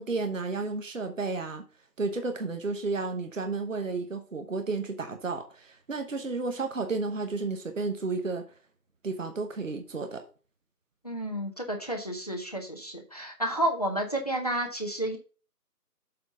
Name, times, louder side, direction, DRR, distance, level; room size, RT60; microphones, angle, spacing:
voice 1, 0.0-1.6 2.0-8.4 9.0-10.2, right 3 dB, 50° right, 1.1 m, -32 dB
voice 2, 11.0-15.2, right 1 dB, 25° left, 0.9 m, -31 dB
7.7 x 4.2 x 5.3 m
figure-of-eight pair, 160°, 47 cm